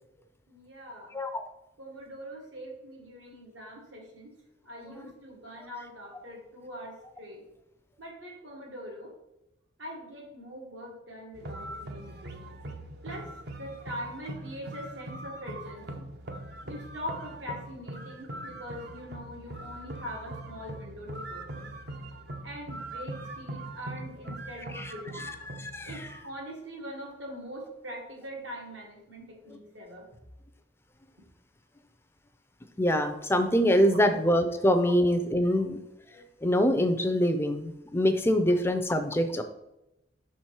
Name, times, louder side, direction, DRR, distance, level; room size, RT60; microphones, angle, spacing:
voice 1, 0.5-1.1 1.8-4.4 4.7-7.4 8.0-9.1 9.8-12.5 13.0-13.3 13.6-16.1 16.7-21.7 22.4-25.3 25.8-30.1 33.9-34.0, equal, 80° right, -1 dB, 2.0 m, -42 dB
voice 2, 1.1-1.5 5.0-5.1 24.7-26.1 32.8-35.8 36.1-39.4, equal, 15° left, 8 dB, 0.4 m, -25 dB
sound 1, 11.3-26.2, right 1 dB, 60° right, 0.7 m, -41 dB
5.9 x 4.4 x 4.7 m, 0.89 s
head